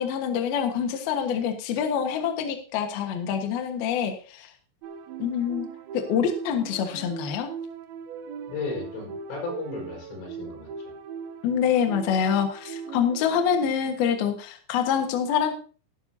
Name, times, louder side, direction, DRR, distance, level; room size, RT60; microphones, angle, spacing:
voice 1, 0.0-4.5 5.2-5.7 5.9-7.5 11.4-15.5, left 8 dB, 65° left, 5 dB, 2.7 m, -26 dB
sound 1, 4.8-13.6, right 6 dB, 80° right, 2.2 m, -39 dB
voice 2, 8.5-10.9, left 4 dB, 85° left, 0 dB, 7.6 m, -35 dB
17.0 x 12.0 x 2.8 m, 0.38 s
omnidirectional pair, 5.9 m